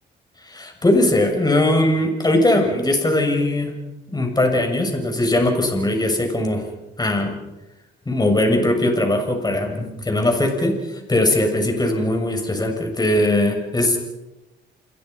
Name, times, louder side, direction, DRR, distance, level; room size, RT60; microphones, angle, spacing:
voice 1, 0.4-3.7 4.1-6.6 7.0-7.3 8.1-14.0, left 1 dB, 20° left, 4 dB, 7.1 m, -20 dB
28.5 x 22.5 x 5.7 m, 1.0 s
cardioid pair, 90°, 20 cm